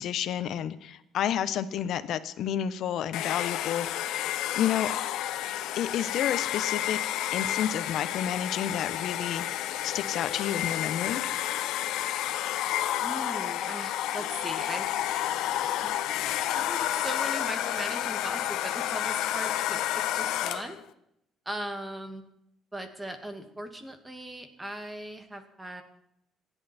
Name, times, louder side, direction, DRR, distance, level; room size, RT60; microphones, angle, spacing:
voice 1, 0.0-3.9 4.2-4.9 5.7-7.0 7.3-11.2, left 10 dB, 60° left, 12 dB, 1.2 m, -30 dB
Domestic sounds home sounds, 3.1-20.8, left 12 dB, 80° left, 1.1 m, -30 dB
voice 2, 13.0-14.9 15.6-15.9 16.5-20.8 21.5-22.2 22.7-25.8, right 1 dB, 10° right, 6 dB, 2.1 m, -39 dB
26.5 x 11.0 x 4.5 m, 0.78 s
cardioid pair, 155°, 0 cm